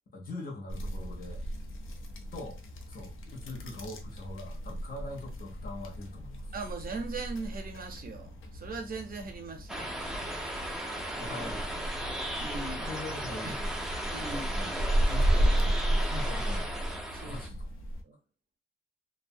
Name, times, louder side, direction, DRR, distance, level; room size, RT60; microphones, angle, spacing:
voice 1, 0.1-1.4 2.3-2.6 2.9-6.5 11.2-11.9 12.8-13.7 14.5-16.7 17.2-17.7, left 2 dB, 45° left, 0.6 m, -42 dB
sound 1, 0.7-18.0, right 1 dB, 90° left, 0.5 m, -34 dB
voice 2, 6.5-9.9 12.4-12.9 13.4-13.5 14.1-14.6 17.1-17.4 18.0-18.2, right 3 dB, 45° right, 0.6 m, -39 dB
sound 2, 9.7-17.5, right 1 dB, ahead, 0.4 m, -36 dB
2.6 x 2.1 x 2.5 m
wide cardioid pair, 170°, 21 cm